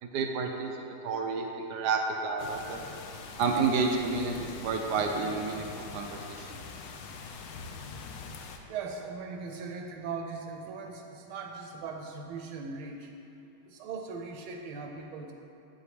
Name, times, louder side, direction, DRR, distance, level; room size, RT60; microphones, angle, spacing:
voice 1, 0.1-0.7 1.0-2.8 3.4-6.6, right 4 dB, 70° right, 3 dB, 1.0 m, -30 dB
sound 1, 2.4-8.6, left 5 dB, 85° left, 1.5 m, -43 dB
voice 2, 8.7-13.1 13.6-15.3, right 4 dB, 90° right, 2 dB, 1.5 m, -39 dB
9.1 x 7.8 x 3.3 m, 2.9 s
omnidirectional pair, 2.2 m